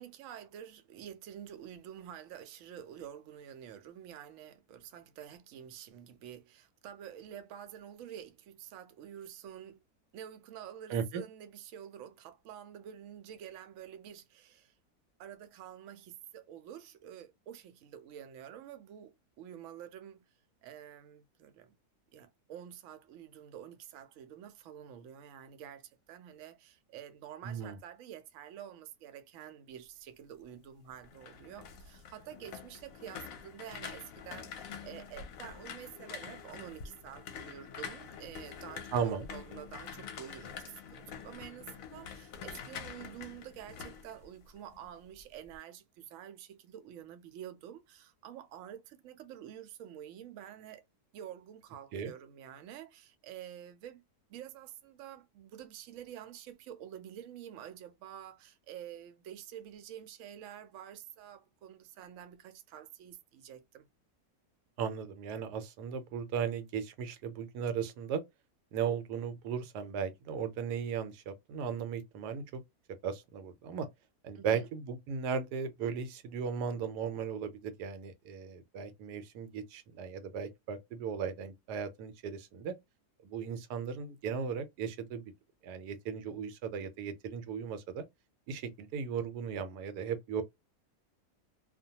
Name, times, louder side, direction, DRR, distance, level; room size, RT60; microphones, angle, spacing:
voice 1, 0.0-9.8 10.1-14.7 15.2-20.3 20.6-21.8 22.1-40.6 40.9-50.8 51.1-54.0 54.3-63.9 74.3-74.7, right 10 dB, 70° right, 0.8 m, -48 dB
voice 2, 10.9-11.2 27.4-27.8 38.9-39.3 51.9-52.1 64.8-68.2 68.7-72.6 73.0-73.9 74.2-82.7 83.2-85.2 85.6-88.0 88.5-90.4, right 7 dB, 90° right, 1.1 m, -36 dB
sound 1, 30.9-44.9 45.2-45.6, left 7 dB, 65° left, 0.9 m, -46 dB
2.5 x 2.1 x 2.7 m
omnidirectional pair, 1.7 m